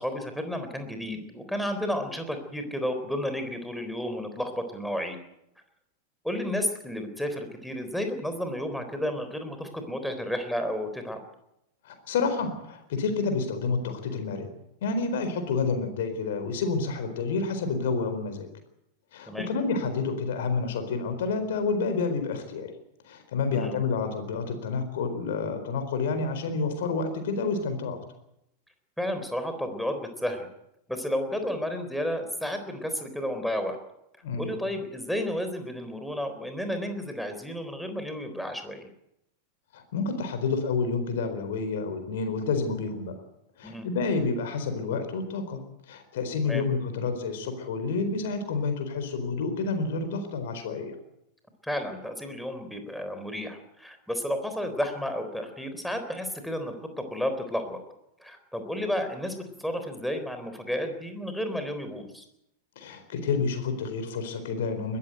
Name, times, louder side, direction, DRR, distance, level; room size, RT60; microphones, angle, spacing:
voice 1, 0.0-5.2 6.2-11.2 19.3-19.5 23.5-23.8 29.0-30.5 30.9-33.8 34.4-38.9 43.6-43.9 46.4-46.6 51.6-57.8 58.2-62.2, equal, ahead, 6 dB, 3.8 m, -32 dB
voice 2, 11.8-14.5 14.8-18.5 19.1-22.7 23.1-28.0 34.2-34.5 39.7-43.1 43.6-51.0 62.8-65.0, left 4 dB, 55° left, 8 dB, 4.3 m, -29 dB
21.0 x 14.0 x 9.1 m, 0.82 s
figure-of-eight pair, 90°, 0 cm